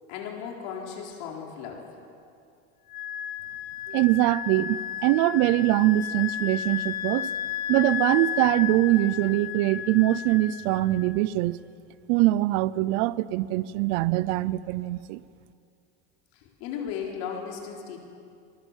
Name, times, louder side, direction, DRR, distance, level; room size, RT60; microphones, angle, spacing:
voice 1, 0.1-1.9 16.3-18.0, left 7 dB, 70° left, 4.3 m, -36 dB
Wind instrument woodwind instrument, 2.9-11.2, left 10 dB, 25° left, 1.1 m, -33 dB
voice 2, 3.9-7.3 7.7-11.6 12.1-15.2, right 16 dB, 60° right, 0.7 m, -23 dB
27.0 x 22.0 x 7.4 m
cardioid pair, 155°, 34 cm